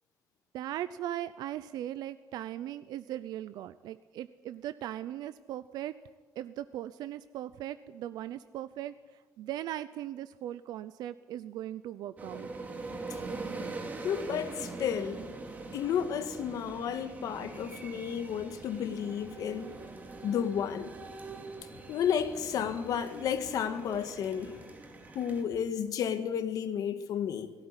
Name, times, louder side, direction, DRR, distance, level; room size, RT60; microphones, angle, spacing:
voice 1, 0.5-5.9 6.4-8.9 9.4-12.5, right 12 dB, 80° right, 0.7 m, -38 dB
sound 1, 12.2-25.4, right 3 dB, 25° right, 2.7 m, -43 dB
voice 2, 14.0-15.2 15.7-19.7 20.2-20.9 21.9-24.6 25.1-27.5, left 8 dB, 60° left, 1.8 m, -32 dB
18.5 x 16.5 x 9.8 m
cardioid pair, 155°, 7 cm